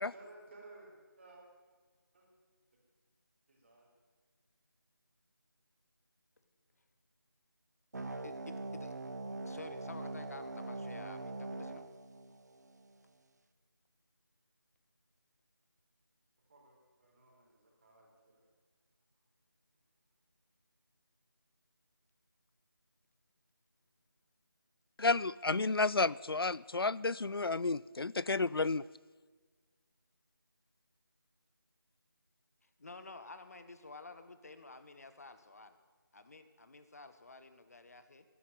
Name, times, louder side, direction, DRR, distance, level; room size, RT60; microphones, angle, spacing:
voice 1, 0.1-1.4 2.1-2.3 3.5-3.9 16.5-18.4, right 2 dB, 30° right, -3 dB, 4.0 m, -57 dB
sound 1, 7.9-12.9, right 2 dB, 45° right, 1.1 m, -43 dB
voice 2, 8.2-8.9 9.4-11.9 32.6-35.8 36.1-38.2, left 3 dB, 45° left, 11 dB, 1.2 m, -51 dB
voice 3, 25.0-28.8, left 3 dB, 85° left, 21 dB, 0.5 m, -31 dB
12.5 x 11.0 x 9.1 m, 1.4 s
figure-of-eight pair, 165°, 12 cm